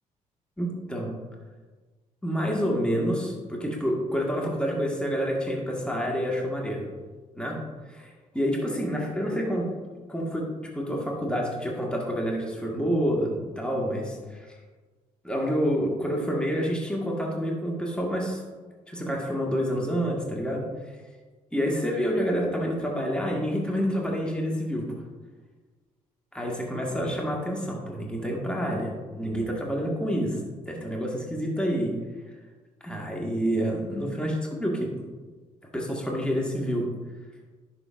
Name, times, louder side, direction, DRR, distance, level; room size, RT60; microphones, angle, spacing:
voice 1, 0.6-1.1 2.2-6.9 7.3-7.6 7.9-9.7 10.1-10.5 10.7-14.6 15.2-18.4 18.9-21.0 21.5-25.0 26.3-32.0 32.8-34.9 35.7-36.9, equal, 5° left, -2 dB, 1.8 m, -28 dB
10.5 x 5.9 x 2.6 m, 1.3 s
supercardioid pair, 55°, 17 cm